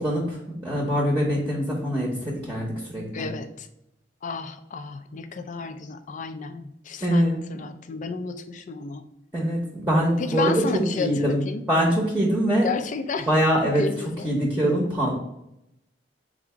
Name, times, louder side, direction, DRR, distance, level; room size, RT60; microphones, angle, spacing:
voice 1, 0.0-3.3 7.0-7.4 9.3-11.4 11.7-12.7 13.3-13.8 14.2-15.1, equal, 10° right, -4 dB, 0.8 m, -23 dB
voice 2, 3.1-3.7 4.2-9.1 10.2-11.6 12.6-13.3 13.6-14.4, left 4 dB, 45° left, 9 dB, 0.4 m, -32 dB
4.0 x 2.5 x 4.6 m, 0.82 s
head